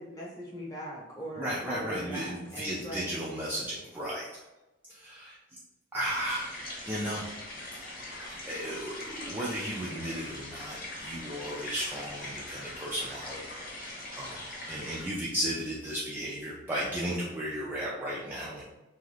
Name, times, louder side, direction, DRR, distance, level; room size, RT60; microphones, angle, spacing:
voice 1, 0.0-3.1, equal, 15° left, -6 dB, 0.9 m, -41 dB
voice 2, 1.4-4.4 4.9-5.4 5.9-6.4 6.8-7.3 8.5-13.5 14.2-14.4 14.7-18.6, equal, 10° right, -7 dB, 0.3 m, -34 dB
sound 1, 6.1-15.0, left 1 dB, 45° left, 0.9 m, -42 dB
2.7 x 2.4 x 3.3 m, 1.0 s
head